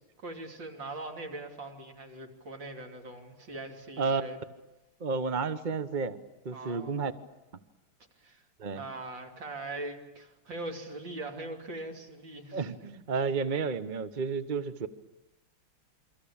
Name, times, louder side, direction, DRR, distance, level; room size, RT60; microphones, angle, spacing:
voice 1, 0.2-4.4 6.5-7.2 8.2-8.4 8.7-12.7, right 2 dB, 60° right, 3 dB, 3.8 m, -41 dB
voice 2, 5.0-6.2 6.4-7.1 8.6-8.8 12.5-14.9, right 5 dB, 40° right, 11 dB, 0.7 m, -31 dB
28.5 x 24.0 x 8.7 m, 1.0 s
omnidirectional pair, 2.4 m